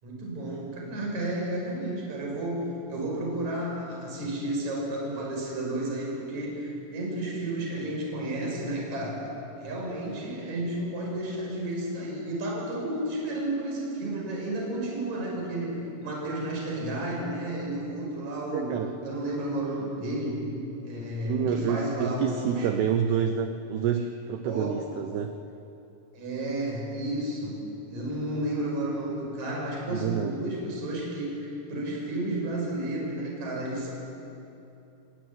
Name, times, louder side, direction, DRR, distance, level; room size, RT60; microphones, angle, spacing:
voice 1, 0.0-9.2 9.6-20.5 20.8-22.7 24.4-24.7 26.1-27.6 27.9-33.9, right 1 dB, 35° right, -1 dB, 6.6 m, -32 dB
voice 2, 18.5-18.9 21.2-25.4 29.9-30.3, right 8 dB, 85° right, 7 dB, 2.3 m, -28 dB
29.5 x 17.5 x 9.6 m, 2.9 s
omnidirectional pair, 5.9 m